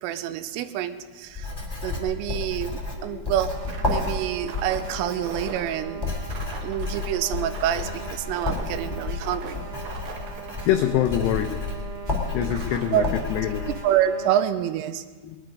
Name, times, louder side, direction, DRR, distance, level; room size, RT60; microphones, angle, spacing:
voice 1, 0.0-1.5 1.8-3.6 3.8-6.0 6.6-9.6 12.9-13.1 13.8-15.0, right 11 dB, 90° right, 11 dB, 3.2 m, -27 dB
Writing, 1.3-13.7, left 3 dB, 20° left, 0.6 m, -31 dB
sound 1, 3.5-14.5, right 5 dB, 65° right, 2.6 m, -39 dB
voice 2, 10.6-11.6 12.3-13.0 13.3-13.7 15.2-15.4, left 10 dB, 90° left, 6 dB, 2.4 m, -25 dB
20.5 x 11.5 x 5.2 m, 1.4 s
omnidirectional pair, 5.7 m